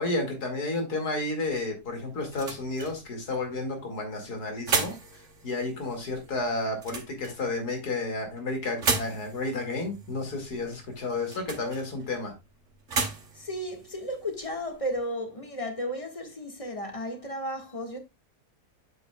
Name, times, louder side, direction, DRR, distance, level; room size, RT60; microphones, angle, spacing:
voice 1, 0.0-5.0 5.4-12.3, left 2 dB, 85° left, 2.8 m, -31 dB
sound 1, 1.5-15.0, right 4 dB, 50° right, 1.7 m, -36 dB
voice 2, 13.3-18.0, equal, 20° left, 1.7 m, -34 dB
7.8 x 7.7 x 2.3 m
omnidirectional pair, 1.6 m